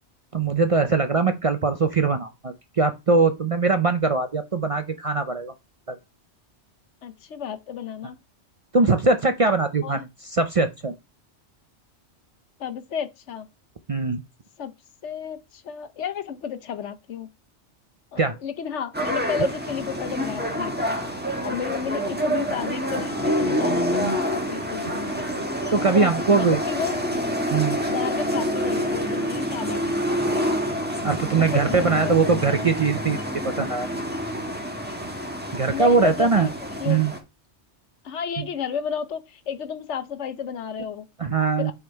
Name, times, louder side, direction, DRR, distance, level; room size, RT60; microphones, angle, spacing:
voice 1, 0.3-5.5 5.9-6.0 8.7-10.9 13.9-14.2 18.2-18.4 19.4-19.5 25.7-26.6 27.5-27.8 31.0-33.2 33.4-33.9 35.5-36.5 36.8-37.1 41.2-41.7, right 4 dB, 45° right, 0.5 m, -21 dB
voice 2, 7.0-8.2 9.8-10.0 12.6-13.5 14.6-14.7 15.0-17.3 18.1-21.0 21.4-25.1 25.8-27.0 27.9-30.6 31.3-32.7 35.7-37.0 38.0-41.1 41.6-41.7, left 7 dB, 80° left, 1.2 m, -32 dB
sound 1, 18.9-37.2, equal, 10° right, 1.3 m, -27 dB
sound 2, 22.5-29.5, left 5 dB, 50° left, 1.3 m, -41 dB
7.9 x 3.6 x 4.5 m
omnidirectional pair, 1.2 m